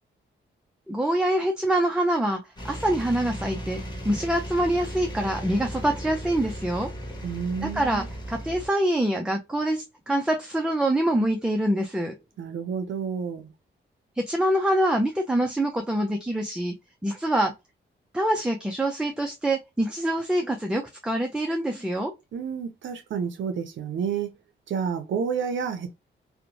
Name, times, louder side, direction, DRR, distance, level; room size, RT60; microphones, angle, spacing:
voice 1, 0.9-6.9 7.7-12.1 14.2-16.7 17.0-17.5 18.1-22.1, right 1 dB, 5° right, 0.4 m, -25 dB
sound 1, 2.6-8.7, equal, 20° left, 0.9 m, -36 dB
voice 2, 7.2-8.1 12.4-13.5 22.3-24.3 24.7-25.9, right 6 dB, 75° right, 0.5 m, -30 dB
2.8 x 2.1 x 2.6 m
cardioid pair, 80°, 20 cm